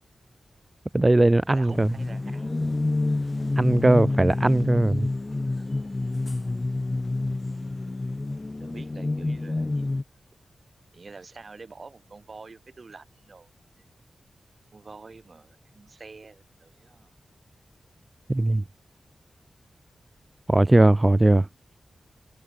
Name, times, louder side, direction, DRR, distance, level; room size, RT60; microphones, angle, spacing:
voice 1, 0.9-1.9 3.6-5.1 18.3-18.6 20.5-21.5, right 2 dB, 25° right, 0.3 m, -19 dB
voice 2, 1.5-2.6 3.4-3.6 3.9-4.5 5.2-5.7 8.6-10.0 10.9-13.5 13.8-13.9 14.7-17.1 21.4-21.5, right 4 dB, 50° right, 3.7 m, -47 dB
sound 1, 1.7-10.0, left 2 dB, 35° left, 1.4 m, -28 dB
cardioid pair, 60°, 0 cm